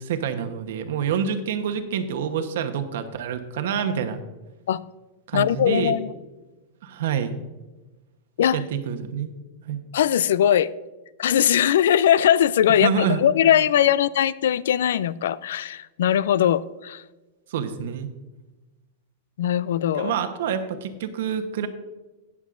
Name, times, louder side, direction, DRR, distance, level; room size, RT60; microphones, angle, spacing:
voice 1, 0.0-4.2 5.3-6.0 6.8-7.3 8.5-9.3 9.7-9.8 12.8-13.6 17.5-18.1 19.9-21.7, right 7 dB, 70° right, 8 dB, 0.9 m, -27 dB
voice 2, 5.3-6.1 8.4-8.6 9.9-10.7 11.2-17.0 19.4-20.1, left 10 dB, 80° left, 19 dB, 0.3 m, -20 dB
18.0 x 7.2 x 2.5 m, 1.1 s
supercardioid pair, 165°, 0 cm